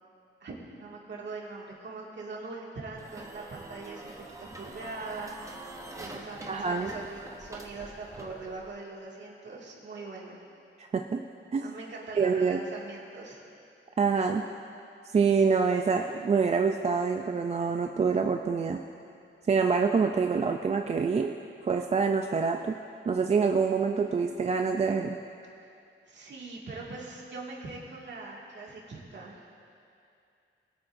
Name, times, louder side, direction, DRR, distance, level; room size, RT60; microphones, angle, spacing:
voice 1, 0.4-5.7 5.9-10.4 11.6-13.5 26.1-29.5, right 3 dB, 60° right, -3 dB, 2.1 m, -42 dB
sound 1, 2.9-8.7, right 2 dB, 15° right, 0.8 m, -45 dB
voice 2, 6.5-6.9 10.8-11.2 11.5-11.7 12.2-12.6 14.0-14.4 15.1-18.8 19.5-21.3 21.6-22.8 23.1-25.2, right 5 dB, 30° right, 4 dB, 0.4 m, -26 dB
22.0 x 8.6 x 2.6 m, 2.6 s
wide cardioid pair, 160°, 21 cm